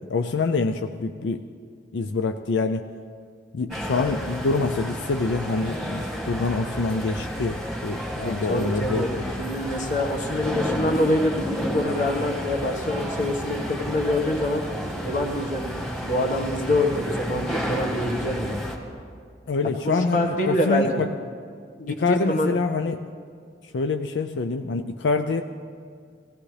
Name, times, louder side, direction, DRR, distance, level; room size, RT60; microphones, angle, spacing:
voice 1, 0.1-1.4 1.9-2.8 3.5-9.3 19.5-21.1 21.9-23.0 23.7-25.4, left 3 dB, 85° left, 7 dB, 0.5 m, -25 dB
sound 1, 3.7-18.8, equal, 5° left, 1.6 m, -31 dB
voice 2, 8.2-9.1 9.4-14.6 15.0-18.6 19.8-21.0 21.8-22.5, left 1 dB, 50° left, 2 dB, 1.5 m, -26 dB
17.0 x 17.0 x 3.3 m, 2.1 s
head